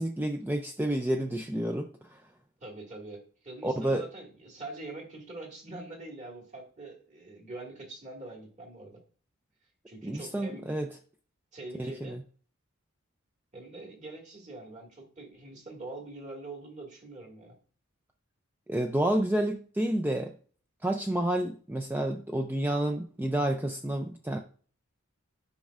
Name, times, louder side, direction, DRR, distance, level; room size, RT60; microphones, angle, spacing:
voice 1, 0.0-2.2 3.6-4.1 10.0-10.9 11.8-12.2 18.7-20.3 20.8-24.4, right 1 dB, 10° right, 4 dB, 0.4 m, -29 dB
voice 2, 2.6-9.0 9.9-10.7 11.5-12.2 13.5-17.6, right 2 dB, 35° right, -1 dB, 1.9 m, -44 dB
10.5 x 5.3 x 2.4 m, 0.43 s
head